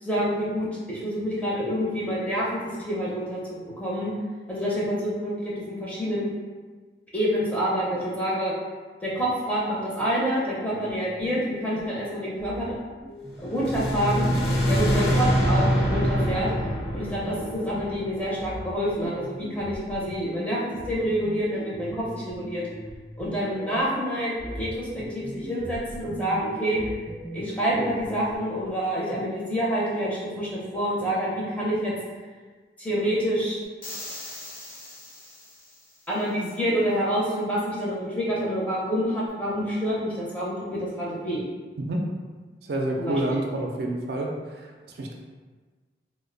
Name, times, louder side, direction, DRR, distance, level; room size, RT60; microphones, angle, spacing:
voice 1, 0.0-4.1 4.5-6.3 7.1-8.5 9.0-12.7 13.4-14.3 14.7-16.5 16.9-22.6 23.2-26.8 27.3-31.9 32.8-33.6 36.1-41.4 43.0-43.4, equal, 10° left, -7 dB, 0.6 m, -27 dB
sound 1, 10.4-12.0 12.4-18.0 18.4-24.0 24.4-28.4, equal, 85° left, 1.0 m, -40 dB
sound 2, 13.4-18.6, equal, 65° left, 0.5 m, -25 dB
sound 3, 33.8-36.1, left 1 dB, 50° left, 0.9 m, -41 dB
voice 2, 42.6-45.1, right 1 dB, 65° right, 0 dB, 0.4 m, -28 dB
2.8 x 2.1 x 3.8 m, 1.4 s
head